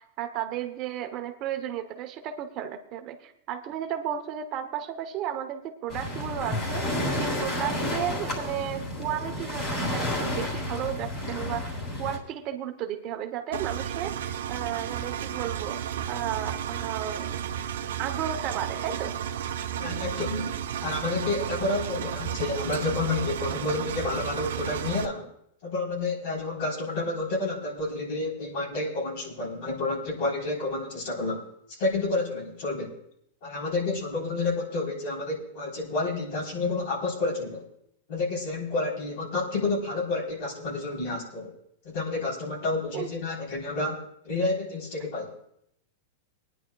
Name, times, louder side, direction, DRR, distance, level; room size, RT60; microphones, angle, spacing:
voice 1, 0.0-17.4 18.0-19.1 42.9-43.1, right 10 dB, 40° right, 6 dB, 0.9 m, -34 dB
Waves surf, 5.9-12.2, left 1 dB, 35° left, 3.2 m, -31 dB
Engine, 13.5-25.0, right 9 dB, 80° right, 0.7 m, -33 dB
voice 2, 19.8-20.6 20.8-25.3 25.6-31.4 31.7-33.0 33.4-37.6 38.1-41.5 41.8-45.3, left 3 dB, 60° left, -1 dB, 3.7 m, -30 dB
25.5 x 10.0 x 2.3 m, 0.72 s
hypercardioid pair, 130°, 0 cm